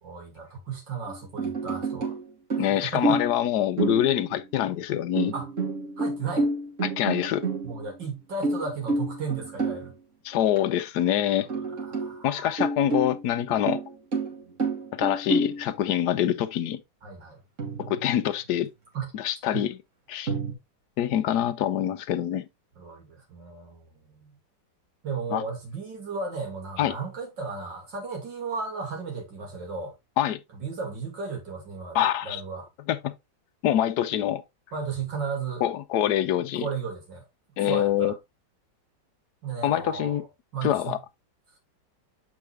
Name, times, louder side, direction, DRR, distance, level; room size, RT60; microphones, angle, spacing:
voice 1, 0.0-2.1 2.6-3.2 5.3-5.5 6.0-6.5 7.6-9.9 11.4-12.5 17.0-17.4 18.9-19.1 19.5-19.7 22.8-24.3 25.0-29.9 30.5-32.7 34.7-35.6 36.6-37.2 37.7-38.1 39.4-40.2 40.5-41.0, right 5 dB, 80° right, 3.3 m, -35 dB
sound 1, 1.1-2.2 2.5-3.5 3.8-4.5 5.2-8.0 8.4-9.9 10.6-10.7 11.0-11.1 11.5-12.2 12.6-15.7 17.6-18.3 20.3-20.5, right 3 dB, 45° right, 2.4 m, -29 dB
voice 2, 2.6-5.3 6.8-7.5 10.2-11.5 12.2-13.8 14.9-16.8 17.8-18.7 19.1-19.8 20.1-20.3 21.0-22.5 25.3-25.4 26.8-26.9 30.2-30.4 31.9-32.4 32.9-33.1 33.6-34.4 35.6-36.7 37.6-38.1 39.6-40.2 40.6-41.0, left 11 dB, 70° left, 1.2 m, -25 dB
7.6 x 4.7 x 3.3 m
omnidirectional pair, 2.0 m